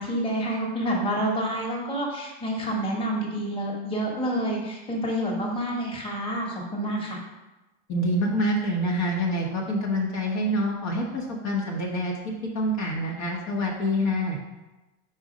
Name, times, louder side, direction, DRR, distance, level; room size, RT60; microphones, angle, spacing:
voice 1, 0.0-7.2, right 1 dB, 15° left, -2 dB, 1.5 m, -28 dB
voice 2, 7.9-14.4, equal, 55° left, -1 dB, 1.4 m, -26 dB
4.7 x 4.4 x 5.1 m, 1.1 s
supercardioid pair, 115°, 34 cm